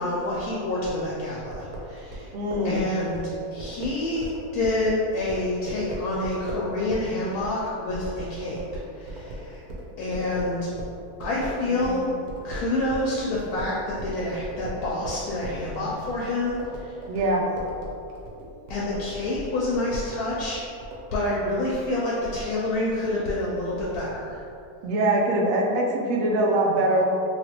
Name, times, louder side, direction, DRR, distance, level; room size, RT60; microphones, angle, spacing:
voice 1, 0.0-2.3 2.6-3.2 3.5-8.6 8.9-9.6 10.0-10.7 11.2-12.0 12.4-16.9 18.7-20.6 21.1-24.4, left 2 dB, 85° left, -6 dB, 1.1 m, -28 dB
sound 1, 1.5-12.0 12.3-21.0, right 1 dB, 90° right, 1.2 m, -38 dB
voice 2, 2.3-2.8 11.7-12.2 17.1-17.4 24.8-27.1, right 1 dB, 70° right, -2 dB, 0.9 m, -23 dB
3.1 x 2.7 x 2.9 m, 2.5 s
omnidirectional pair, 1.6 m